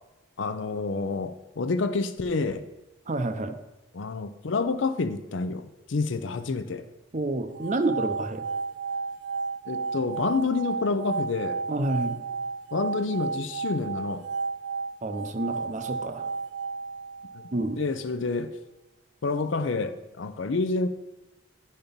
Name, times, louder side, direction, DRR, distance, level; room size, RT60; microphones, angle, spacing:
voice 1, 0.4-2.6 3.9-6.8 9.7-11.6 12.7-14.2 17.3-17.4 17.8-18.5 19.2-20.9, left 3 dB, 75° left, 11 dB, 0.5 m, -28 dB
voice 2, 3.1-3.6 7.1-8.4 11.7-12.2 15.0-16.3 17.5-17.8, right 2 dB, 40° right, 9 dB, 0.6 m, -29 dB
sound 1, 7.5-17.7, right 4 dB, 80° right, 0.6 m, -33 dB
10.5 x 4.3 x 5.2 m, 1.1 s
head